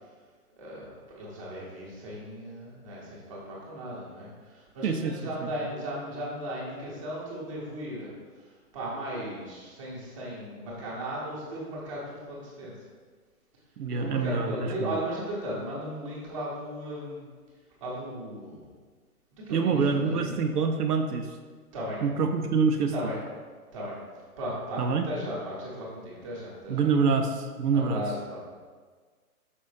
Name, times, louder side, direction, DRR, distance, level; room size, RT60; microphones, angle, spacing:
voice 1, 0.6-12.9 13.9-17.3 17.8-18.7 19.3-20.4 21.7-22.0 22.9-23.2 23.7-24.0 24.4-26.9 27.7-28.5, right 1 dB, 20° right, -6 dB, 1.1 m, -36 dB
voice 2, 4.8-5.2 13.8-14.7 19.5-21.3 22.0-22.9 24.8-25.1 26.7-28.0, right 5 dB, 80° right, 5 dB, 0.7 m, -25 dB
5.5 x 5.3 x 3.4 m, 1.5 s
hypercardioid pair, 165°, 46 cm